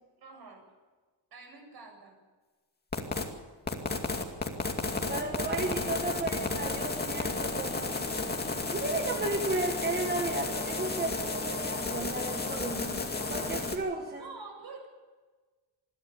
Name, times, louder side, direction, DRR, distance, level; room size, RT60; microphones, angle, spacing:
voice 1, 0.2-0.6 1.3-2.2 14.2-14.9, right 4 dB, 55° right, 2 dB, 8.0 m, -46 dB
sound 1, 2.9-3.2 3.7-13.8, left 3 dB, 20° left, 2.4 m, -32 dB
voice 2, 5.1-8.0 8.7-13.0 13.3-14.3, right 2 dB, 20° right, 3 dB, 1.6 m, -34 dB
26.5 x 12.5 x 8.6 m, 1.3 s
wide cardioid pair, 165°, 44 cm